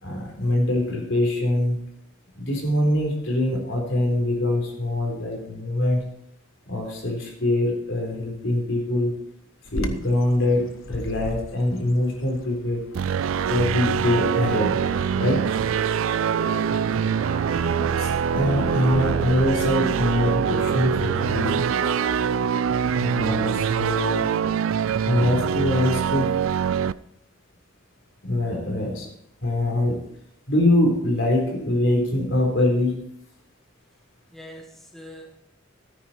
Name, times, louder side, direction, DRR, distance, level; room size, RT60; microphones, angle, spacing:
voice 1, 0.0-1.8 2.3-6.0 6.7-9.1 9.7-12.8 13.5-14.7 15.1-15.5 17.6-21.6 23.0-24.3 25.0-26.4 28.2-29.1 29.4-30.0 30.5-32.9, left 1 dB, 65° left, 1 dB, 4.1 m, -23 dB
Bird vocalization bird call bird song, 9.7-15.3, left 1 dB, 85° left, 1.1 m, -39 dB
sound 1, 12.9-26.9, right 7 dB, 80° right, 0.4 m, -24 dB
sound 2, 14.4-22.2, right 5 dB, 40° right, 1.2 m, -33 dB
voice 2, 16.4-17.2 34.3-35.4, equal, ahead, 2 dB, 1.0 m, -45 dB
13.0 x 9.6 x 4.5 m, 0.73 s
head